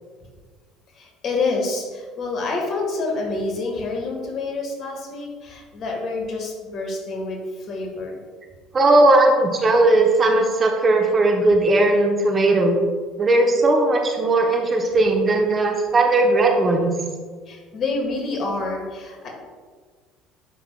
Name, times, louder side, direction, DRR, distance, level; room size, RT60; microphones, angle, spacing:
voice 1, 0.9-8.2 17.5-19.3, left 3 dB, 45° left, 1 dB, 1.6 m, -27 dB
voice 2, 8.7-12.8 13.2-16.9, right 2 dB, 30° right, 2 dB, 1.0 m, -17 dB
9.4 x 5.8 x 2.3 m, 1.5 s
figure-of-eight pair, 60°, 0 cm